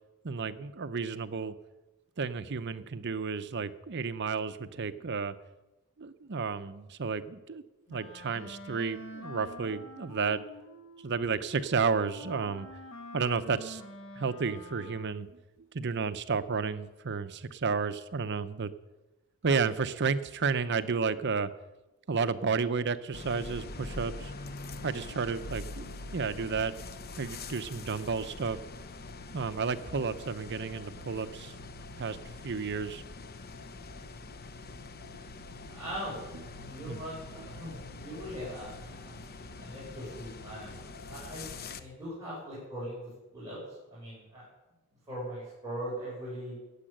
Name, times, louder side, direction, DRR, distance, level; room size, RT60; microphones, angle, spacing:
voice 1, 0.2-1.6 2.2-5.4 6.0-7.6 7.9-10.4 11.0-12.7 13.1-13.8 14.2-15.3 15.7-18.7 19.4-21.5 22.1-24.3 24.8-26.7 27.2-28.6 29.3-31.5 31.9-32.2 32.4-33.0 36.9-37.0, right 5 dB, 55° right, 12 dB, 0.7 m, -32 dB
Wind instrument woodwind instrument, 7.9-15.3, left 1 dB, 65° left, 1.7 m, -47 dB
sound 1, 23.1-41.8, left 3 dB, 45° left, 0.8 m, -44 dB
voice 2, 35.7-36.2 36.5-39.1 39.6-40.7 41.1-43.6 43.9-44.4 45.1-46.5, equal, 15° right, -9 dB, 6.7 m, -40 dB
15.0 x 8.6 x 8.8 m, 1.1 s
head